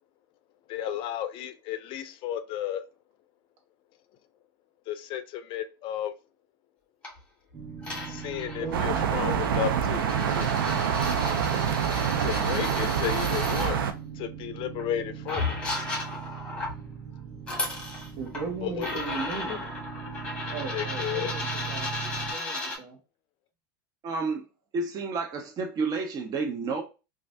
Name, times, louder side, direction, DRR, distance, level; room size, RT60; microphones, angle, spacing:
voice 1, 0.7-2.8 4.9-6.1 8.0-10.5 12.2-13.8 14.2-15.6 18.6-19.0 20.7-21.3, left 10 dB, 45° left, 0.4 m, -33 dB
sound 1, 7.0-7.2 7.8-13.7 14.8-14.9 15.3-16.8 17.3-18.5 18.8-22.8, left 2 dB, 10° left, 1.2 m, -35 dB
sound 2, 7.5-22.3, right 7 dB, 15° right, 1.8 m, -39 dB
voice 2, 8.6-9.1 18.2-19.8 20.5-21.9 22.2-23.0, right 4 dB, 60° right, 1.2 m, -37 dB
sound 3, 8.7-13.9, right 7 dB, 90° right, 0.4 m, -26 dB
voice 3, 24.0-24.4 24.7-26.8, right 4 dB, 35° right, 0.5 m, -30 dB
3.1 x 2.4 x 2.6 m
hypercardioid pair, 105°, 12 cm